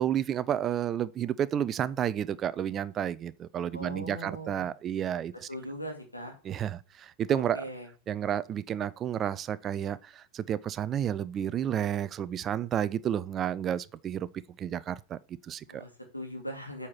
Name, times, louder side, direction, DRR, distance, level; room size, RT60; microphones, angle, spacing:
voice 1, 0.0-5.3 6.4-7.6 8.1-14.3 14.6-15.8, right 9 dB, 30° right, 0.4 m, -31 dB
voice 2, 3.7-4.7 5.5-6.3 7.3-7.9 15.7-16.9, equal, 85° left, 2.0 m, -40 dB
8.5 x 4.3 x 4.6 m
figure-of-eight pair, 90°, 0 cm